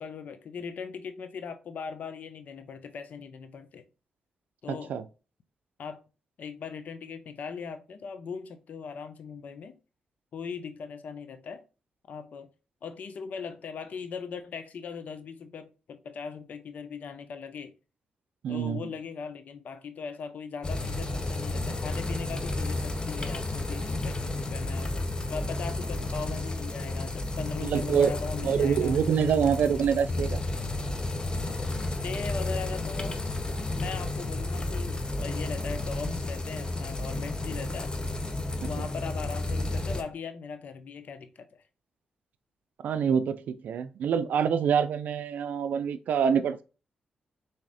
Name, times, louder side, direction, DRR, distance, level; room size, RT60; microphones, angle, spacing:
voice 1, 0.0-3.8 4.6-4.9 5.8-6.0 6.4-9.7 10.3-11.6 12.1-12.5 12.8-17.7 18.5-24.9 25.3-29.0 31.9-33.2 33.7-37.9 38.6-41.6, left 6 dB, 70° left, 0.5 m, -39 dB
voice 2, 4.7-5.0 18.4-18.9 27.6-28.1 28.4-30.4 38.8-38.9 42.8-46.6, right 7 dB, 75° right, 0.4 m, -26 dB
sound 1, 20.6-40.0, left 2 dB, 30° left, 0.7 m, -32 dB
3.6 x 2.8 x 3.3 m
supercardioid pair, 50°, 3 cm